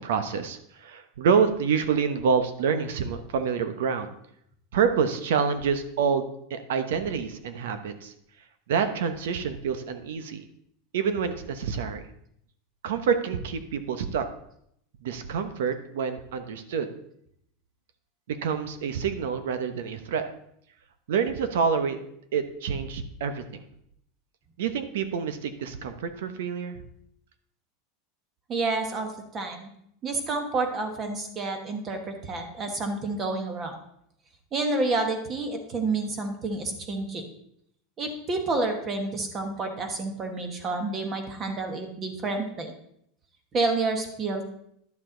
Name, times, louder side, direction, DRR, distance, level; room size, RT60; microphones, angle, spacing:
voice 1, 0.0-4.1 4.7-8.1 8.7-10.5 10.9-12.1 12.8-14.3 15.0-16.9 18.3-20.2 21.1-22.0 22.3-23.6 24.6-26.8, right 6 dB, 85° right, 10 dB, 1.0 m, -27 dB
voice 2, 28.5-29.7 30.0-33.7 34.5-37.2 38.0-42.7 43.5-44.4, right 3 dB, 20° right, 6 dB, 1.3 m, -29 dB
11.0 x 7.1 x 3.9 m, 0.73 s
supercardioid pair, 165°, 0 cm